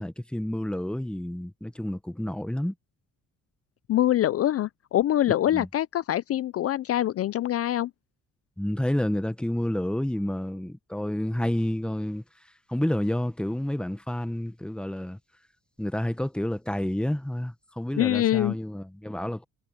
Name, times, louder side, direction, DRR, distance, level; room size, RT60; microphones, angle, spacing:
voice 1, 0.0-2.7 5.5-5.7 8.6-12.2 12.7-15.2 15.8-19.4, left 1 dB, 5° left, 1.3 m, -29 dB
voice 2, 3.9-7.9 18.0-18.6, left 13 dB, 50° left, 0.5 m, -24 dB
cardioid pair, 90°, 30 cm